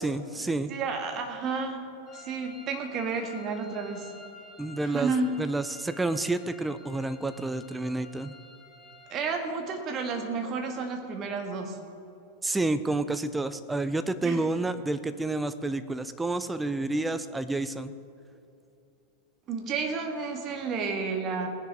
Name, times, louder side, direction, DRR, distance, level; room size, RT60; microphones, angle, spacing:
voice 1, 0.0-0.7 4.6-8.3 12.4-17.9, right 2 dB, 10° right, 11 dB, 0.6 m, -29 dB
voice 2, 0.7-4.1 4.8-5.3 9.1-11.8 14.2-14.4 19.5-21.5, right 4 dB, 30° right, 3 dB, 1.8 m, -31 dB
sound 1, 2.1-9.4, left 2 dB, 20° left, 1.5 m, -51 dB
19.0 x 10.5 x 3.7 m, 2.7 s
figure-of-eight pair, 90°, 0 cm